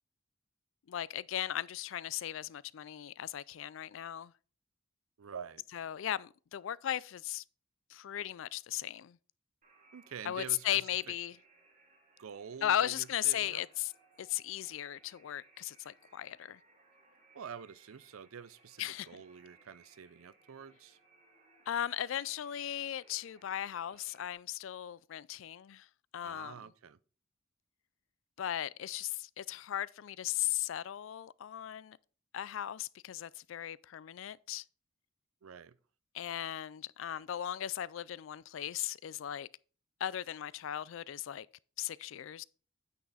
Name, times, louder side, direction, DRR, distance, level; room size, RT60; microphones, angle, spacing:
voice 1, 0.9-4.3 5.7-7.4 7.9-9.2 10.3-11.4 12.6-13.9 14.2-16.6 18.8-19.1 21.7-25.9 26.1-26.5 28.4-32.0 32.3-34.6 36.1-39.5 40.0-41.5 41.8-42.4, left 11 dB, 65° left, 0.3 m, -37 dB
voice 2, 5.2-5.6 9.9-10.9 12.2-13.6 17.3-21.0 26.2-27.0 35.4-35.8, right 7 dB, 85° right, 0.5 m, -47 dB
sound 1, 9.6-24.3, right 3 dB, 35° right, 2.4 m, -65 dB
9.2 x 5.9 x 4.0 m
head